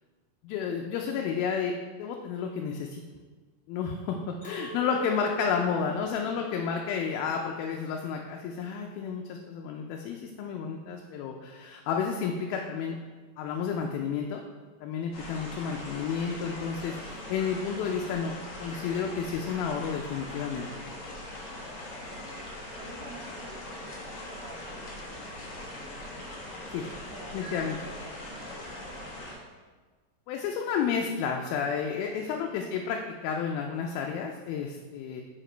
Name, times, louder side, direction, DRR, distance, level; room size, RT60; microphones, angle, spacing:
voice 1, 0.4-1.7 2.0-3.0 3.7-13.0 13.4-14.4 14.8-18.3 18.6-20.7 26.7-26.9 27.3-27.8 30.3-35.2, left 6 dB, 85° left, 2 dB, 2.4 m, -31 dB
Chink clink, 4.4-9.8, equal, 45° left, 2.7 m, -45 dB
voice 2, 4.5-5.0 5.5-5.8 15.7-15.9 17.5-17.9 22.1-25.6 27.1-29.2 32.6-32.9, right 3 dB, 75° right, -2 dB, 2.5 m, -50 dB
sound 1, 15.1-29.4, left 1 dB, 65° left, 1.6 m, -41 dB
6.0 x 4.9 x 4.4 m, 1.4 s
omnidirectional pair, 4.3 m